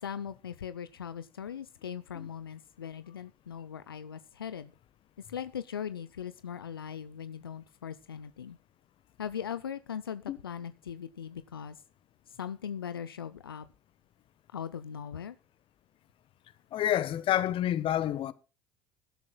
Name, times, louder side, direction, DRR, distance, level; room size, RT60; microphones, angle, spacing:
voice 1, 0.0-4.7 5.2-8.6 9.2-11.8 12.3-13.7 14.5-15.4, left 8 dB, 85° left, 0.6 m, -40 dB
voice 2, 16.7-18.3, left 12 dB, 50° left, 1.2 m, -28 dB
21.5 x 12.5 x 2.3 m
hypercardioid pair, 65°, 12 cm